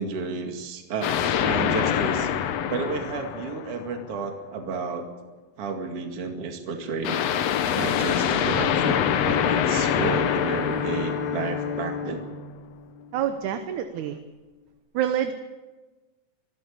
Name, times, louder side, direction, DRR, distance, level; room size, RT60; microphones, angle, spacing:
voice 1, 0.0-2.3 2.7-5.1 5.6-7.2 7.7-12.2, right 4 dB, 45° right, 4 dB, 2.9 m, -32 dB
sound 1, 1.0-4.1 7.0-12.2, left 9 dB, 65° left, 1.7 m, -25 dB
Bowed string instrument, 8.6-13.6, left 7 dB, 85° left, 4.3 m, -32 dB
voice 2, 13.1-14.2 14.9-15.3, right 10 dB, 70° right, 8 dB, 2.2 m, -27 dB
26.0 x 12.0 x 8.5 m, 1.2 s
omnidirectional pair, 3.9 m